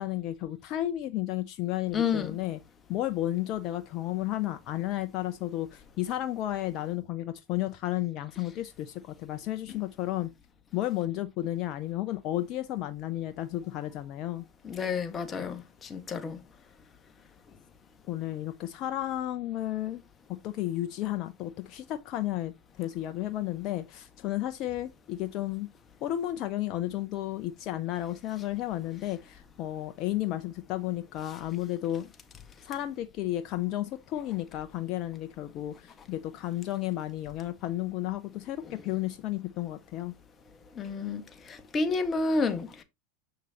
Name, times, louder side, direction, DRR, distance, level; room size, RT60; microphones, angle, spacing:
voice 1, 0.0-2.6 2.9-10.3 10.7-14.4 18.1-20.0 20.3-22.5 22.8-25.7 26.0-32.1 32.6-40.1, left 14 dB, 50° left, 0.6 m, -33 dB
voice 2, 1.9-2.4 14.6-16.4 40.7-41.2 41.5-42.8, left 4 dB, 25° left, 1.5 m, -30 dB
7.6 x 6.5 x 2.9 m
hypercardioid pair, 90°, 0 cm